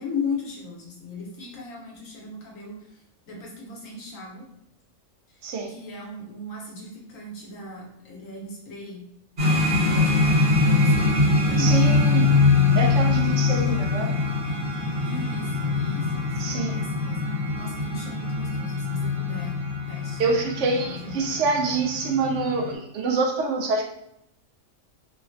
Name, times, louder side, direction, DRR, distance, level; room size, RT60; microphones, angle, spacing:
voice 1, 0.0-4.4 5.3-9.0 9.4-12.1 15.0-16.4 16.7-19.6 19.9-20.3 20.7-21.4, left 3 dB, 90° left, -2 dB, 1.3 m, -37 dB
sound 1, 9.4-22.7, left 3 dB, 50° right, 1.1 m, -23 dB
voice 2, 11.6-12.3 12.7-14.1 16.4-16.7 20.2-23.8, right 3 dB, 70° right, 2 dB, 0.9 m, -26 dB
3.1 x 2.2 x 2.4 m, 0.78 s
omnidirectional pair, 1.3 m